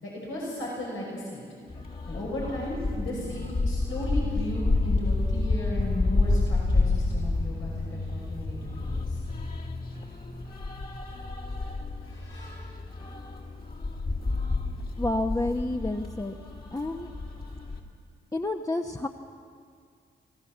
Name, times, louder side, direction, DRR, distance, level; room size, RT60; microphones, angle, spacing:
voice 1, 0.0-1.4 2.1-9.2 12.0-12.5, left 1 dB, 80° left, -4 dB, 5.9 m, -35 dB
sound 1, 1.7-17.8, left 2 dB, 45° left, 3.3 m, -29 dB
voice 2, 15.0-16.4 16.7-17.1 18.3-19.1, left 2 dB, 15° left, 3 dB, 1.1 m, -29 dB
24.5 x 17.0 x 7.4 m, 2.2 s
supercardioid pair, 45°, 21 cm